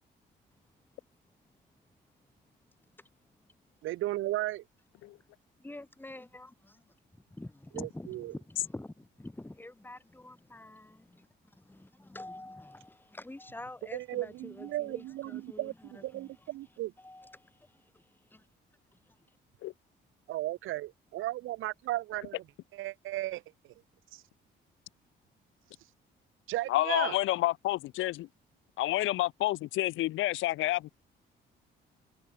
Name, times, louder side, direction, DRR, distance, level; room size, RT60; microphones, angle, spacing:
voice 1, 3.8-4.6 7.7-8.3 13.9-16.9 20.3-22.4 22.7-23.4 24.1-24.2 26.5-27.2, right 16 dB, 90° right, 2.6 m, -35 dB
voice 2, 5.6-6.9 7.3-11.3 11.6-16.3 17.0-18.5 19.1-19.2, left 2 dB, 10° left, 3.0 m, -47 dB
voice 3, 26.7-28.3 28.8-30.9, left 16 dB, 80° left, 0.6 m, -29 dB
cardioid pair, 90°, 20 cm